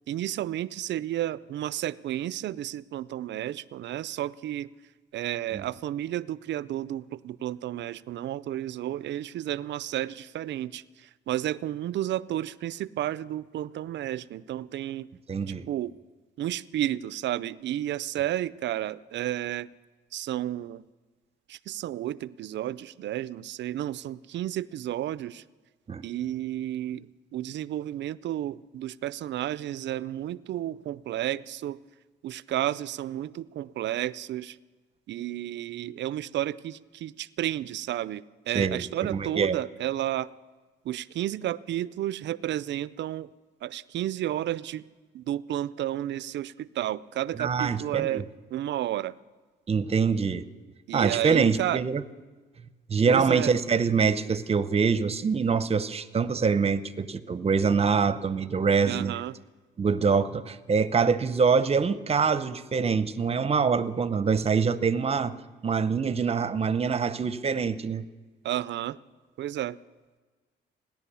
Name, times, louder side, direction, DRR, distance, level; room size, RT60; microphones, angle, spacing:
voice 1, 0.1-4.7 5.1-15.1 15.5-15.9 16.4-19.7 20.1-20.8 21.5-25.4 26.0-31.8 32.2-34.6 35.1-40.3 40.8-43.3 43.6-44.8 45.1-49.1 50.9-51.8 53.1-53.5 58.9-59.3 68.4-69.0 69.4-69.8, right 13 dB, 65° right, 18 dB, 0.5 m, -32 dB
voice 2, 15.3-15.7 25.9-26.0 38.5-38.8 39.1-39.6 47.4-48.2 49.7-50.4 50.9-52.0 52.9-59.1 59.8-65.3 65.6-68.0, right 5 dB, 30° right, 14 dB, 0.7 m, -25 dB
17.0 x 10.5 x 6.9 m, 1.3 s
cardioid pair, 90°, 20 cm